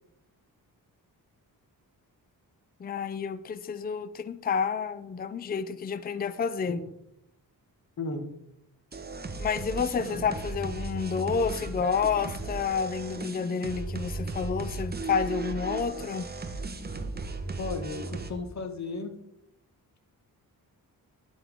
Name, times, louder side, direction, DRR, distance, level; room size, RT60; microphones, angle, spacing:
voice 1, 2.8-6.8 9.4-16.3, left 6 dB, 25° left, 12 dB, 0.5 m, -30 dB
sound 1, 8.9-18.3, right 3 dB, 25° right, 1.1 m, -36 dB
voice 2, 17.6-19.1, left 3 dB, 50° left, 5 dB, 1.6 m, -34 dB
11.0 x 8.4 x 3.6 m, 0.81 s
wide cardioid pair, 115°, 36 cm